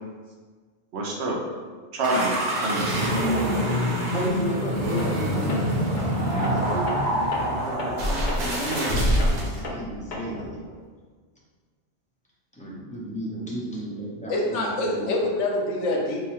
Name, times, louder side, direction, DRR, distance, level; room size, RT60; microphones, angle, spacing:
voice 1, 0.9-1.4 1.9-3.8, right 2 dB, 70° right, -1 dB, 0.9 m, -28 dB
sound 1, 2.0-9.6, equal, 45° right, 0.7 m, -25 dB
voice 2, 4.1-5.6 5.9-6.0 6.3-10.8 12.5-15.2, equal, 10° left, -6 dB, 0.4 m, -34 dB
Tools, 5.0-5.2 5.5-10.5, left 2 dB, 55° left, 0.6 m, -36 dB
voice 3, 14.3-16.3, left 1 dB, 85° left, 0 dB, 1.0 m, -26 dB
4.6 x 2.2 x 2.9 m, 1.5 s
omnidirectional pair, 1.2 m